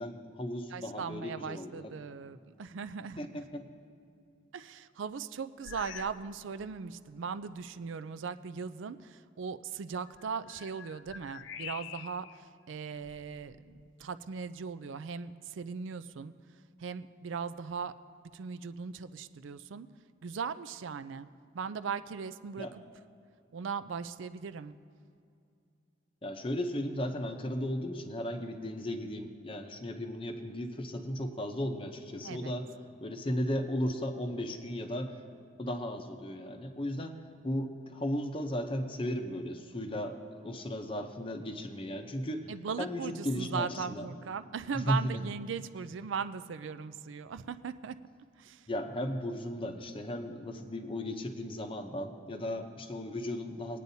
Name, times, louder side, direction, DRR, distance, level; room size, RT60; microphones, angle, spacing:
voice 1, 0.0-1.9 3.2-3.7 22.6-22.7 26.2-32.7 33.0-35.2 35.6-37.2 37.4-40.2 40.4-42.5 42.8-44.1 44.7-45.2 48.7-53.8, equal, 25° left, 5 dB, 0.7 m, -35 dB
voice 2, 0.7-3.3 4.5-16.3 16.8-17.9 18.3-19.9 20.2-21.3 21.5-22.7 23.5-24.8 32.2-32.5 42.5-48.0 48.4-48.7, right 6 dB, 75° right, 13 dB, 0.4 m, -39 dB
sound 1, 5.6-6.3 6.6-6.9 7.6-7.7 10.1-12.4 12.9-14.0, left 8 dB, 70° left, 0.4 m, -47 dB
20.5 x 9.1 x 2.7 m, 2.5 s
head